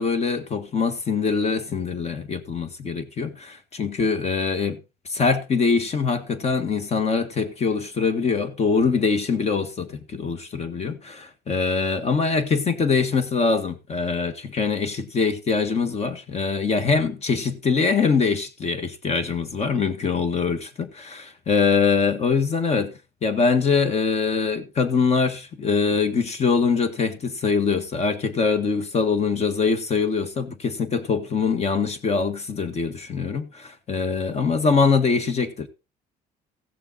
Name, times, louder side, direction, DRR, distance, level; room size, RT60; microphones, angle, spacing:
voice 1, 0.0-3.3 3.8-4.8 5.1-22.9 23.2-35.7, left 5 dB, 40° left, 1.6 m, -23 dB
15.5 x 6.9 x 4.0 m
cardioid pair, 110°, 17 cm